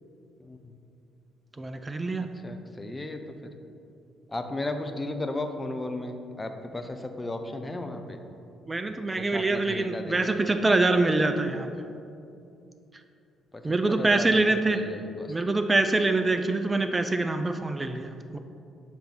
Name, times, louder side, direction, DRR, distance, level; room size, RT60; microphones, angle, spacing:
voice 1, 0.4-0.7 2.2-3.2 4.3-8.2 9.1-10.3 13.5-15.3, left 2 dB, 20° left, 6 dB, 0.6 m, -35 dB
voice 2, 1.6-2.3 8.7-11.7 13.6-14.8 15.3-18.4, right 2 dB, 25° right, 7 dB, 0.3 m, -25 dB
6.9 x 3.8 x 4.4 m, 2.6 s
figure-of-eight pair, 45°, 0 cm